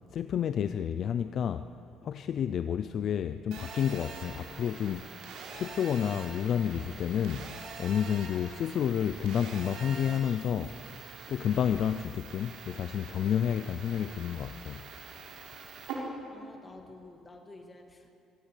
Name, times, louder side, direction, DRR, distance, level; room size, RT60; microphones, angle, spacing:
voice 1, 0.1-1.7 2.0-5.2 5.5-10.7 11.3-14.9, left 8 dB, 40° left, 0.5 m, -30 dB
Telephone, 3.5-15.9, right 5 dB, 70° right, 4.7 m, -45 dB
voice 2, 16.3-18.1, left 2 dB, 15° left, 2.1 m, -51 dB
24.0 x 18.0 x 8.4 m
cardioid pair, 180°, 0 cm